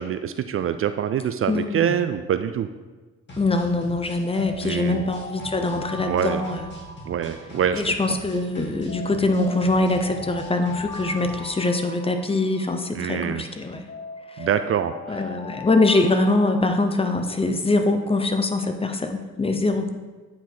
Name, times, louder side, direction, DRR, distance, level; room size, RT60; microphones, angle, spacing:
voice 1, 0.0-2.7 4.6-5.1 6.1-6.4 7.1-7.8 8.1-8.2 12.9-13.4 14.4-15.2, right 8 dB, 45° right, 10 dB, 0.4 m, -25 dB
voice 2, 1.5-2.0 3.4-6.7 7.7-13.8 14.4-14.5 15.1-19.9, left 2 dB, 20° left, 6 dB, 0.7 m, -23 dB
sound 1, 3.3-11.6, equal, 35° left, 2.3 m, -43 dB
Alarm, 4.2-8.3 8.9-13.3 13.9-17.7, left 3 dB, 65° left, 2.2 m, -40 dB
8.6 x 4.7 x 3.9 m, 1.3 s
cardioid pair, 90°, 30 cm